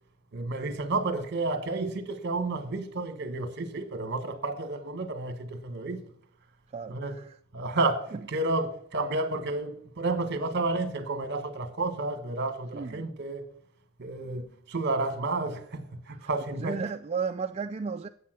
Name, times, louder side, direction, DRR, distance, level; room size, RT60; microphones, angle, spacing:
voice 1, 0.3-6.0 6.9-7.2 7.5-13.5 14.0-16.8, right 2 dB, 50° right, 1.3 m, -31 dB
voice 2, 6.7-7.4 8.1-8.2 12.7-13.1 16.2-16.3 16.6-18.1, right 5 dB, 30° right, 0.4 m, -34 dB
8.4 x 8.3 x 6.2 m
head